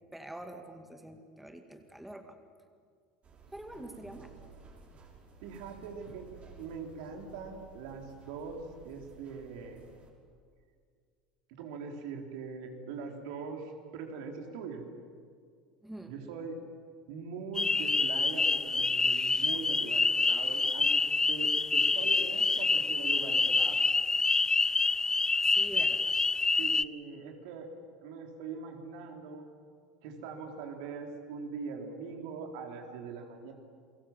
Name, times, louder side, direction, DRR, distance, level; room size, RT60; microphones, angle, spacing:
voice 1, 0.1-2.4 3.5-4.3 15.8-16.1 25.4-26.2, right 1 dB, 5° right, 6 dB, 2.2 m, -46 dB
sound 1, 3.2-10.1, right 4 dB, 30° right, 5.6 m, -55 dB
voice 2, 3.8-4.5 5.4-6.3 6.6-9.8 11.5-14.8 16.1-16.6 17.1-21.0 21.3-23.8 26.6-27.7 28.0-29.5 30.0-33.5, right 5 dB, 60° right, 3 dB, 3.9 m, -42 dB
sound 2, 17.6-26.8, left 3 dB, 15° left, 0.6 m, -27 dB
29.5 x 23.0 x 7.5 m, 2.1 s
figure-of-eight pair, 70°, 4 cm